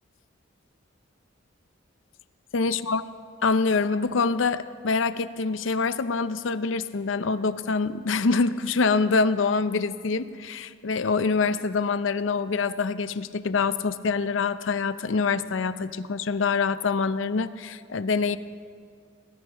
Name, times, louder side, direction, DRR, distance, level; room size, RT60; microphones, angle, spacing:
voice 1, 2.5-3.0 3.4-18.4, left 4 dB, 85° left, 13 dB, 0.6 m, -25 dB
23.0 x 18.5 x 3.0 m, 2.2 s
head